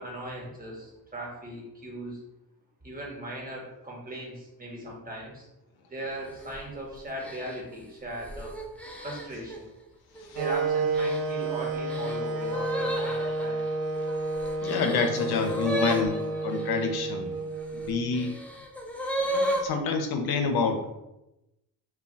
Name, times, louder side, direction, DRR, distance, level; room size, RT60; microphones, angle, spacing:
voice 1, 0.0-2.2 2.8-5.5 5.9-8.5 9.0-9.6 10.3-13.6, right 1 dB, 20° right, -2 dB, 1.0 m, -38 dB
sound 1, 6.2-6.6 7.2-9.6 10.1-10.6 10.9-16.8 17.6-19.7, right 1 dB, 5° left, 0.3 m, -34 dB
Wind instrument woodwind instrument, 10.4-18.3, right 2 dB, 70° right, 0.5 m, -30 dB
voice 2, 14.6-17.3 17.7-18.4 19.3-21.0, left 5 dB, 70° left, 5 dB, 0.6 m, -28 dB
2.3 x 2.2 x 3.8 m, 0.92 s
cardioid pair, 90°, 39 cm